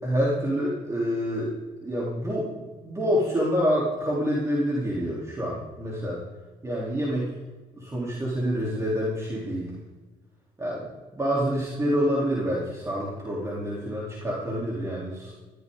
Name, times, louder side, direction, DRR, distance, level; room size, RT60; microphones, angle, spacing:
voice 1, 0.0-1.5 1.8-6.2 6.6-7.3 7.7-9.7 10.6-15.3, equal, 20° right, -5 dB, 3.8 m, -27 dB
16.5 x 13.5 x 4.0 m, 1.3 s
cardioid pair, 110°, 17 cm